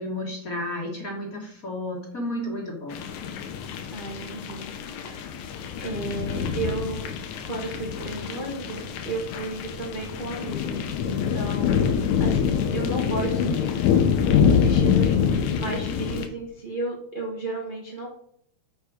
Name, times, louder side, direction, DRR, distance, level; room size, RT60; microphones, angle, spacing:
voice 1, 0.0-3.0 14.6-14.8, left 1 dB, 40° left, 0 dB, 1.4 m, -32 dB
sound 1, 2.9-16.3, left 7 dB, 85° left, 2.2 m, -25 dB
voice 2, 3.9-5.4 5.8-7.1 7.4-11.8 12.2-18.1, right 2 dB, 70° right, -3 dB, 0.4 m, -34 dB
7.3 x 5.0 x 4.8 m, 0.66 s
omnidirectional pair, 3.3 m